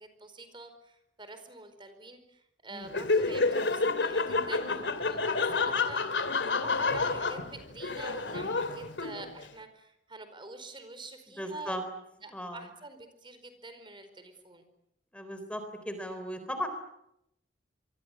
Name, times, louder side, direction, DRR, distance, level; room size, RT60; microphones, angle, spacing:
voice 1, 0.0-11.8 12.2-14.7, right 2 dB, 30° right, 9 dB, 4.6 m, -46 dB
Laughter, 2.9-9.4, left 3 dB, 90° left, 2.7 m, -29 dB
voice 2, 11.4-11.8 12.3-12.6 15.1-16.7, equal, 5° left, 8 dB, 3.7 m, -36 dB
26.5 x 25.0 x 8.4 m, 0.81 s
head